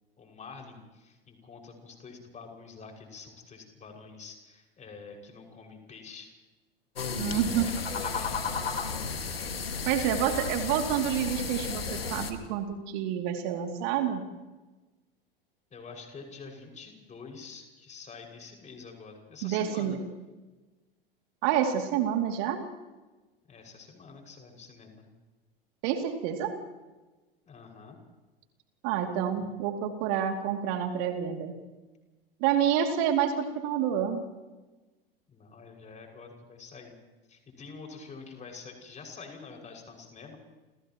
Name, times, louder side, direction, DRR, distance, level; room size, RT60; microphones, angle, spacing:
voice 1, 0.2-6.3 7.6-8.4 15.7-20.0 23.5-25.1 27.4-28.0 35.3-37.0 37.3-40.4, left 4 dB, 25° left, 1 dB, 6.1 m, -47 dB
sound 1, 7.0-12.3, left 5 dB, 80° left, 2.0 m, -33 dB
voice 2, 7.2-7.7 9.9-14.2 19.4-20.0 21.4-22.6 25.8-26.5 28.8-31.5 32.4-34.2, right 9 dB, 50° right, 4 dB, 2.7 m, -28 dB
30.0 x 29.5 x 3.1 m, 1.2 s
figure-of-eight pair, 85°, 29 cm